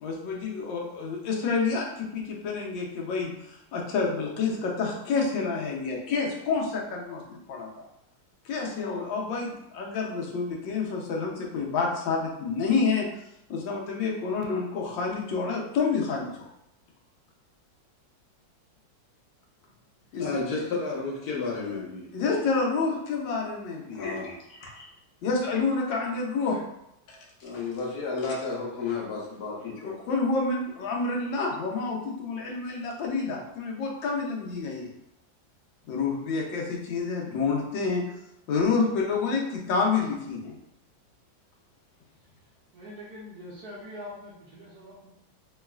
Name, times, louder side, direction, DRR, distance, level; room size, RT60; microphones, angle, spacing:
voice 1, 0.0-3.3 3.7-7.2 7.5-7.7 8.5-13.1 13.5-16.3 20.1-20.3 22.1-24.0 25.2-26.6 29.6-34.9 35.9-38.0 38.5-40.5, left 4 dB, 75° left, -1 dB, 1.5 m, -28 dB
voice 2, 20.2-22.3 23.9-24.9 27.1-30.0, left 4 dB, 60° left, -3 dB, 1.3 m, -32 dB
voice 3, 42.7-45.1, left 1 dB, 65° right, -5 dB, 1.1 m, -43 dB
3.9 x 3.1 x 2.3 m, 0.83 s
omnidirectional pair, 2.1 m